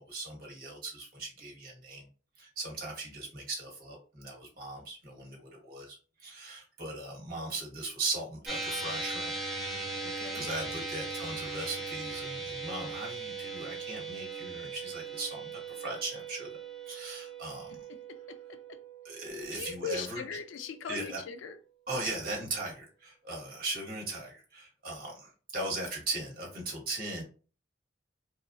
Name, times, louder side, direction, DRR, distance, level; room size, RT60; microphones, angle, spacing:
voice 1, 0.0-2.1 2.4-9.3 10.3-16.5 16.8-17.8 19.0-20.2 20.9-21.2 21.9-27.2, right 2 dB, 50° right, 1.1 m, -38 dB
sound 1, 8.5-21.0, right 3 dB, ahead, 0.5 m, -39 dB
voice 2, 10.0-10.5 17.9-18.0 18.3-18.8 19.5-21.6 21.9-22.0, left 6 dB, 80° left, 0.4 m, -40 dB
2.9 x 2.2 x 2.5 m
head